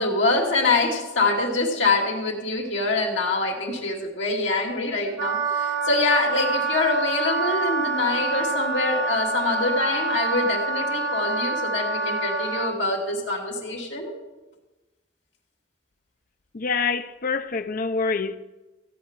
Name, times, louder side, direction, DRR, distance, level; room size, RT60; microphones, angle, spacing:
voice 1, 0.0-14.1, left 3 dB, 70° left, 2.7 m, -25 dB
Wind instrument woodwind instrument, 5.2-12.7, right 3 dB, 85° right, 2.7 m, -26 dB
voice 2, 16.5-18.4, left 4 dB, 50° left, 0.6 m, -26 dB
15.5 x 5.2 x 8.9 m
head